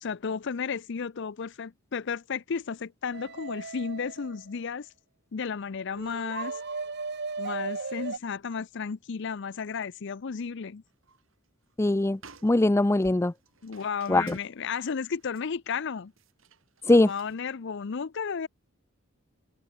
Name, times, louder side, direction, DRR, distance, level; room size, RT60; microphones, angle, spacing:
voice 1, 0.0-4.9 5.3-6.6 7.4-10.8 13.6-16.1 16.9-18.5, left 6 dB, 60° left, 0.5 m, -33 dB
sound 1, 3.1-4.6 6.0-8.2, right 4 dB, 55° right, 1.4 m, -36 dB
sound 2, 10.9-11.4 11.7-11.8 12.1-17.4, right 4 dB, 80° right, 7.4 m, -55 dB
voice 2, 11.8-13.3 14.1-14.4 16.9-17.1, left 2 dB, 15° left, 0.4 m, -21 dB
head